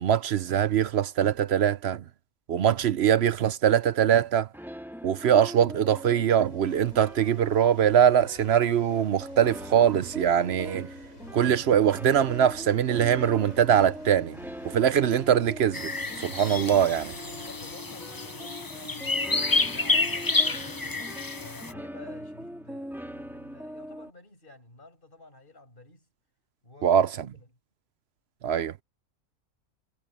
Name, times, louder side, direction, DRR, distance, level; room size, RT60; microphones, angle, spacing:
voice 1, 0.0-2.0 2.5-4.5 5.0-10.9 11.3-14.4 14.6-15.9 16.2-17.1 26.8-27.1 28.4-28.7, right 9 dB, 60° right, 0.8 m, -22 dB
sound 1, 4.5-24.1, equal, ahead, 2.0 m, -42 dB
sound 2, 6.5-17.8, left 1 dB, 70° left, 7.9 m, -49 dB
sound 3, 15.7-21.7, left 3 dB, 20° left, 0.6 m, -29 dB
voice 2, 17.5-21.1 21.4-26.1 26.6-27.5, left 2 dB, 40° left, 6.4 m, -51 dB
omnidirectional pair, 1.4 m